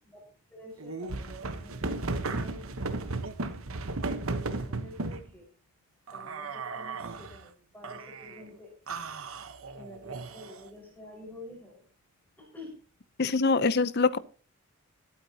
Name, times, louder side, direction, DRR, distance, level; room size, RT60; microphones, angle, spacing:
voice 1, 0.5-3.1 4.0-5.5 6.1-6.5 6.7-8.7 9.7-11.8 12.5-12.7, left 1 dB, 10° left, -2 dB, 5.3 m, -48 dB
sound 1, 0.8-5.3 6.1-7.4 7.8-8.4 8.9-10.7, right 3 dB, 75° right, 1.2 m, -35 dB
voice 2, 13.2-14.2, left 4 dB, 50° left, 16 dB, 0.7 m, -24 dB
21.5 x 8.8 x 2.9 m, 0.36 s
head